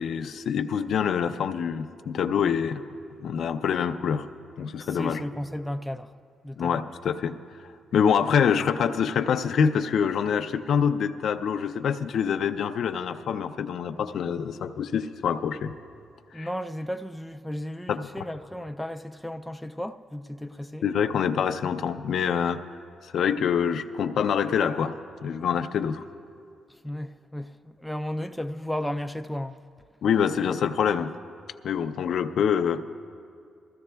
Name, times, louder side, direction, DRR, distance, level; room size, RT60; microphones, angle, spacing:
voice 1, 0.0-2.8 3.2-4.3 4.6-5.2 6.6-7.4 7.9-15.7 16.4-16.5 17.9-18.0 20.8-22.6 23.0-24.9 25.2-26.0 30.0-31.1 31.6-32.8, left 7 dB, 70° left, 0.4 m, -25 dB
voice 2, 4.8-6.1 6.4-6.9 16.3-20.8 26.8-29.6, left 1 dB, ahead, 0.3 m, -34 dB
22.0 x 14.5 x 2.3 m
cardioid pair, 110°, 0 cm